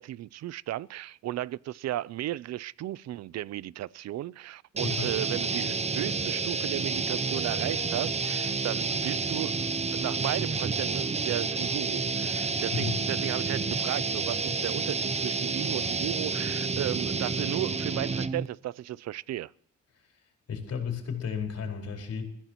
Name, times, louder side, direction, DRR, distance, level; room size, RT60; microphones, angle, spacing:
voice 1, 0.0-9.6 9.9-19.5, right 14 dB, 60° right, 0.5 m, -35 dB
voice 2, 4.8-5.1 12.7-12.9 20.5-22.2, left 6 dB, 55° left, 4.6 m, -33 dB
sound 1, 4.8-18.5, right 4 dB, 20° right, 0.8 m, -30 dB
21.5 x 15.0 x 3.0 m
cardioid pair, 90°, 30 cm